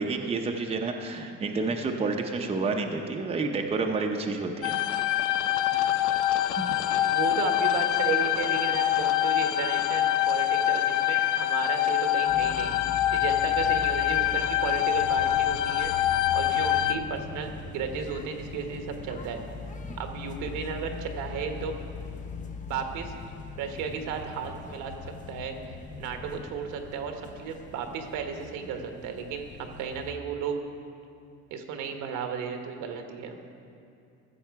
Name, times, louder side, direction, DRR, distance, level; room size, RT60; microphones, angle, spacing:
voice 1, 0.0-4.8 5.7-6.1 6.6-6.8, right 3 dB, 20° right, 3 dB, 0.7 m, -30 dB
sound 1, 4.6-16.9, left 13 dB, 70° left, 0.5 m, -25 dB
voice 2, 6.7-12.7 13.1-15.9 16.3-19.4 20.0-21.7 22.7-23.1 23.6-24.9 25.3-30.6 31.5-33.4, right 6 dB, 75° right, 5 dB, 1.2 m, -34 dB
sound 2, 12.3-30.2, left 4 dB, 25° left, 0.6 m, -41 dB
14.5 x 7.2 x 4.7 m, 2.6 s
cardioid pair, 130°, 30 cm